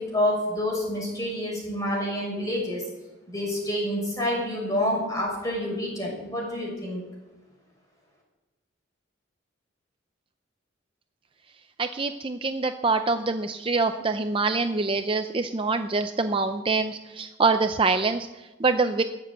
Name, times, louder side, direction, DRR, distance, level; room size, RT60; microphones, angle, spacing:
voice 1, 0.0-2.8 3.3-7.0, left 1 dB, 15° left, -3 dB, 6.3 m, -28 dB
voice 2, 11.8-19.0, right 3 dB, 25° right, 8 dB, 0.5 m, -25 dB
19.0 x 7.6 x 8.2 m, 1.1 s
head